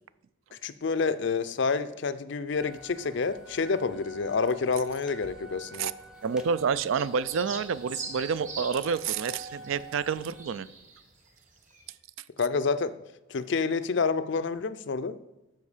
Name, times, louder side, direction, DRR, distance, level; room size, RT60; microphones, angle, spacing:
voice 1, 0.6-5.9 12.4-12.9 13.3-15.2, left 4 dB, 55° left, 13 dB, 0.4 m, -28 dB
sound 1, 2.6-10.4, right 1 dB, 5° right, 0.6 m, -48 dB
sound 2, 6.2-11.3 11.6-11.8, right 4 dB, 35° right, 1.4 m, -43 dB
voice 2, 6.2-10.7, right 6 dB, 70° right, 17 dB, 0.4 m, -28 dB
12.5 x 4.5 x 5.0 m, 0.99 s
head